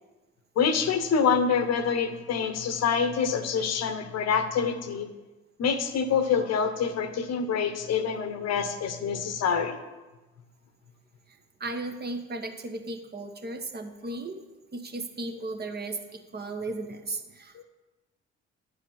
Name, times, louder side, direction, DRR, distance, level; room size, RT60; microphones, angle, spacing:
voice 1, 0.6-5.1 5.6-9.8 17.5-17.6, left 6 dB, 50° left, 10 dB, 1.1 m, -26 dB
voice 2, 11.6-14.4 14.7-17.6, right 2 dB, 30° right, 5 dB, 1.3 m, -35 dB
10.0 x 4.9 x 7.3 m, 1.1 s
figure-of-eight pair, 45°, 34 cm